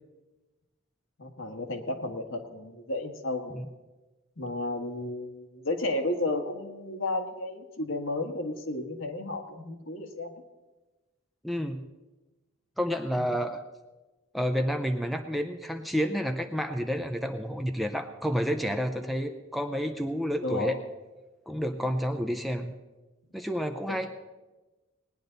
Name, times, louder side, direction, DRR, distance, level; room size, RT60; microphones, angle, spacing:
voice 1, 1.2-3.6 4.4-10.4 13.2-13.3 20.4-20.8 23.9-24.1, left 2 dB, 70° left, 3 dB, 1.6 m, -33 dB
voice 2, 11.4-11.8 12.8-13.6 14.3-20.8 21.5-22.7 23.3-24.1, equal, ahead, 5 dB, 0.5 m, -30 dB
19.5 x 10.0 x 4.0 m, 1.1 s
head